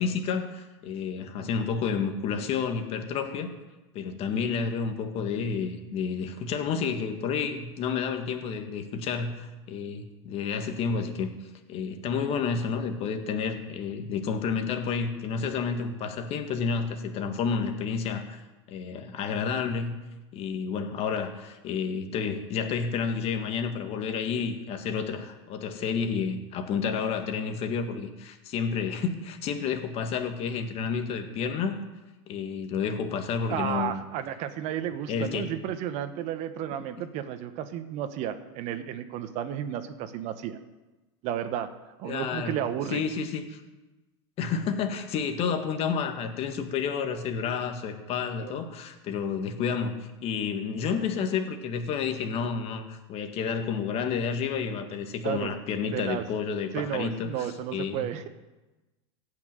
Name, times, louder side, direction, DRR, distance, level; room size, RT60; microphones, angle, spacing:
voice 1, 0.0-3.5 3.9-11.3 11.7-18.4 18.7-19.9 20.3-31.8 32.3-34.0 35.1-35.5 36.7-36.8 42.0-42.6 42.9-43.6 44.4-58.1, left 6 dB, 45° left, 6 dB, 1.9 m, -30 dB
voice 2, 33.5-40.6 41.2-41.7 42.0-43.0 48.4-48.5 55.2-55.5 55.9-56.2 56.7-58.3, right 10 dB, 50° right, 11 dB, 1.2 m, -32 dB
15.5 x 6.0 x 9.1 m, 1.1 s
supercardioid pair, 120°, 15 cm